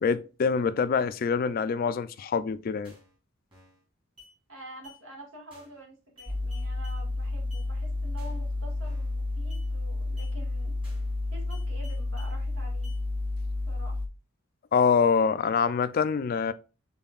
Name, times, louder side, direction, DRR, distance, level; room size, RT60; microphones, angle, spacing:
voice 1, 0.0-2.9 14.7-16.5, left 6 dB, 45° left, 0.3 m, -25 dB
sound 1, 2.8-3.1 3.5-3.8 4.2-4.3 4.8-5.0 5.5-5.8 6.2-7.0 7.5-7.7 8.2-8.5 8.8-9.1 9.5-9.7 10.2-10.3 10.8-11.1 11.5-12.3 12.8-13.0, left 4 dB, 25° right, 2.7 m, -53 dB
voice 2, 4.5-10.7 11.3-12.9 13.7-14.0, equal, 80° right, 1.8 m, -47 dB
sound 2, 6.3-14.1, left 2 dB, 10° right, 0.6 m, -31 dB
5.6 x 3.8 x 2.4 m
head